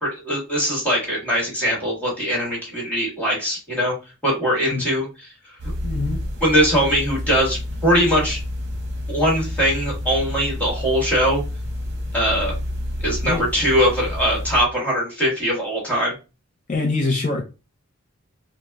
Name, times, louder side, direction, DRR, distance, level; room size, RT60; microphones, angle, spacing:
voice 1, 0.0-3.9 4.2-5.1 6.4-8.4 9.1-11.4 12.1-12.5 13.0-16.1, equal, 5° left, -4 dB, 1.4 m, -21 dB
sound 1, 5.6-14.6, left 1 dB, 55° right, 0.9 m, -29 dB
voice 2, 5.8-6.2 13.2-13.4 16.7-17.4, left 3 dB, 40° left, -1 dB, 0.5 m, -23 dB
4.0 x 2.1 x 2.2 m, 0.30 s
head